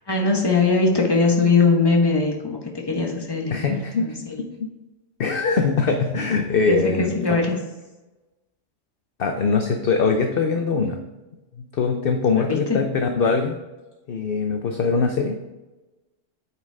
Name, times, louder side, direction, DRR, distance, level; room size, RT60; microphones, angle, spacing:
voice 1, 0.1-2.6 2.9-4.4 6.7-7.6 12.5-12.8, left 4 dB, 20° left, 0 dB, 1.3 m, -21 dB
voice 2, 3.5-4.7 5.2-7.4 9.2-11.0 11.7-13.6 14.1-15.4, left 4 dB, 55° left, 4 dB, 0.8 m, -22 dB
9.2 x 5.8 x 3.5 m, 1.1 s
omnidirectional pair, 1.3 m